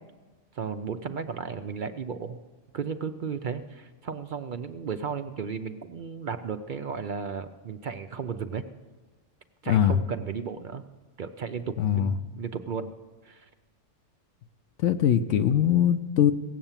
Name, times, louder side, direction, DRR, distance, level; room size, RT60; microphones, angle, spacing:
voice 1, 0.5-2.4 2.7-8.6 9.6-10.8 11.2-12.9 13.2-13.5, right 6 dB, 60° right, 8 dB, 0.5 m, -34 dB
voice 2, 11.8-12.1 14.8-16.3, left 10 dB, 70° left, 9 dB, 0.9 m, -21 dB
17.0 x 7.9 x 7.2 m, 1.3 s
omnidirectional pair, 1.4 m